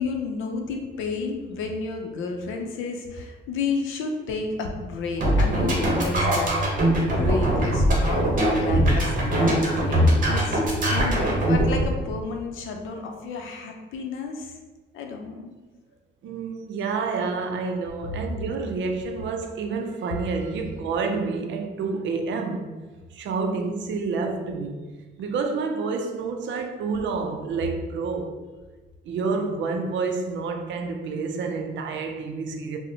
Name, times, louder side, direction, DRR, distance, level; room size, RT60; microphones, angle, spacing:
voice 1, 0.0-6.5 7.0-8.3 8.6-10.0 10.3-14.6 14.9-15.5, left 4 dB, 85° left, 0.5 m, -31 dB
sound 1, 5.1-11.9, right 1 dB, 45° right, 1.0 m, -21 dB
voice 2, 16.2-22.7 23.1-24.8 25.2-28.4 29.1-32.8, right 4 dB, 70° right, 0.4 m, -28 dB
4.0 x 2.1 x 2.7 m
cardioid pair, 90°, 20 cm